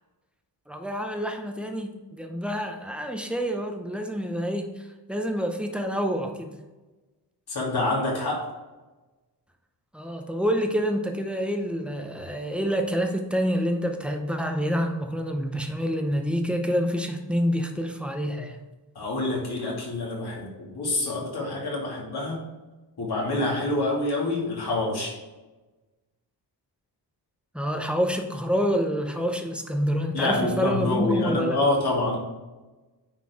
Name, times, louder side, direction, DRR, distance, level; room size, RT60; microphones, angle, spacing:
voice 1, 0.7-6.5 9.9-18.6 27.5-31.6, equal, 5° right, 4 dB, 0.7 m, -27 dB
voice 2, 7.5-8.4 18.9-22.4 23.0-25.2 30.1-32.2, left 2 dB, 60° left, -4 dB, 2.5 m, -26 dB
9.5 x 4.5 x 3.6 m, 1.2 s
wide cardioid pair, 155°, 43 cm